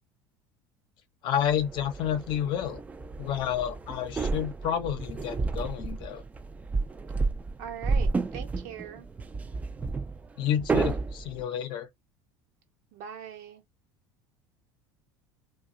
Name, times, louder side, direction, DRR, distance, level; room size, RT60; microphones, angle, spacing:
voice 1, 1.2-2.8 3.2-6.2 10.4-11.9, left 9 dB, 55° left, 0.6 m, -30 dB
sound 1, 1.4-11.4, right 3 dB, 15° right, 0.4 m, -31 dB
voice 2, 7.6-9.1 12.9-13.6, right 9 dB, 75° right, 1.0 m, -41 dB
2.7 x 2.3 x 2.5 m
supercardioid pair, 115°, 9 cm